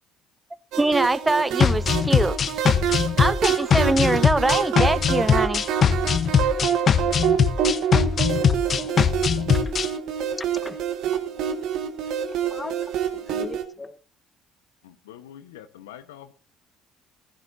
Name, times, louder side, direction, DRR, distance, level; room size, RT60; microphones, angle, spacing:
sound 1, 0.7-13.6, right 8 dB, 65° right, 1.6 m, -26 dB
voice 1, 0.8-2.4 3.2-5.6, right 2 dB, 15° right, 0.5 m, -23 dB
sound 2, 1.6-9.9, left 7 dB, 45° left, 0.8 m, -21 dB
voice 2, 6.3-7.1 8.7-9.1 9.5-9.7 10.4-10.8 11.1-11.2 12.0-12.1 12.4-14.0, left 3 dB, 20° left, 1.2 m, -41 dB
voice 3, 14.8-16.3, left 11 dB, 85° left, 1.0 m, -44 dB
15.0 x 14.0 x 2.6 m
hypercardioid pair, 55°, 0 cm